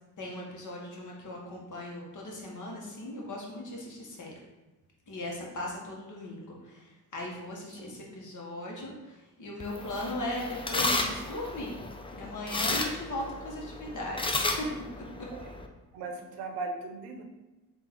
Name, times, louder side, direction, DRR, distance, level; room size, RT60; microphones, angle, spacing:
voice 1, 0.2-4.3 5.1-11.8 12.1-14.7, left 1 dB, 50° left, -2 dB, 1.3 m, -38 dB
sound 1, 9.6-15.7, left 2 dB, 15° left, 0.5 m, -33 dB
voice 2, 15.9-17.2, right 3 dB, 75° right, 4 dB, 0.7 m, -38 dB
3.6 x 2.7 x 4.5 m, 1.1 s
supercardioid pair, 55°, 39 cm